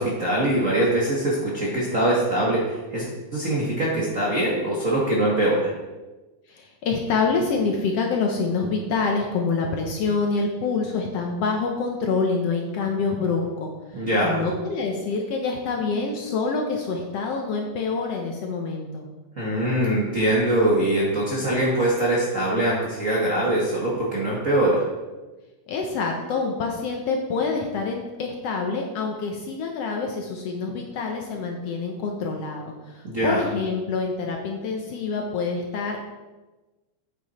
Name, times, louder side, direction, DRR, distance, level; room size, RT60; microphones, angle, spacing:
voice 1, 0.0-5.7 13.9-14.4 19.4-24.8 33.0-33.4, right 1 dB, 40° right, -6 dB, 1.2 m, -23 dB
voice 2, 6.5-19.1 25.7-36.0, left 4 dB, 65° left, 1 dB, 1.7 m, -26 dB
8.9 x 7.0 x 4.2 m, 1.2 s
omnidirectional pair, 3.4 m